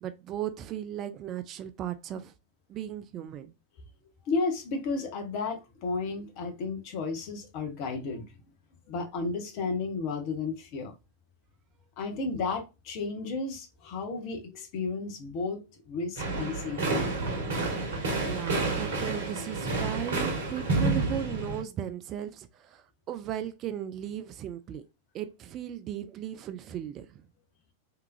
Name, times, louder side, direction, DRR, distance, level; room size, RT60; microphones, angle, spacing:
voice 1, 0.0-2.3 2.7-3.5 18.3-24.8 25.1-27.2, right 10 dB, 35° right, 0.3 m, -36 dB
voice 2, 4.2-8.4 8.9-10.9 12.0-17.1, left 4 dB, 45° left, 0.9 m, -33 dB
sound 1, 16.2-21.6, right 3 dB, 60° right, 1.0 m, -29 dB
3.5 x 2.8 x 2.2 m
figure-of-eight pair, 90°, 0 cm